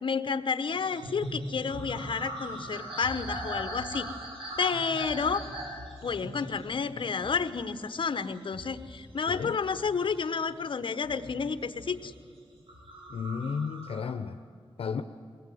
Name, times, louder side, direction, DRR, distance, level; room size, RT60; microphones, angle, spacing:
voice 1, 0.0-4.1 4.6-5.4 6.0-12.1, left 5 dB, 60° left, 11 dB, 1.2 m, -30 dB
sound 1, 0.7-10.6 11.0-12.0 12.5-14.0, right 1 dB, 65° right, 7.8 m, -40 dB
voice 2, 13.1-14.4 14.8-15.0, left 6 dB, 80° left, 8 dB, 0.8 m, -33 dB
22.5 x 18.5 x 9.4 m, 2.3 s
wide cardioid pair, 95°, 10 cm